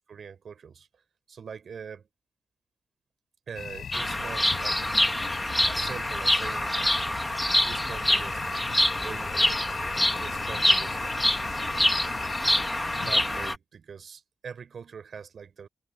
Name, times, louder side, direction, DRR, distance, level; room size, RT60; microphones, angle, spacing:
voice 1, 0.1-1.0 1.3-2.1 3.5-4.8 5.7-7.2 7.6-9.6 10.2-11.6 12.4-12.6 13.0-15.7, right 6 dB, 60° right, 4.3 m, -43 dB
sound 1, 3.5-13.5, left 7 dB, 70° left, 4.7 m, -38 dB
Bird vocalization bird call bird song, 3.9-13.6, left 1 dB, 5° left, 2.1 m, -26 dB
wide cardioid pair, 130°, 0 cm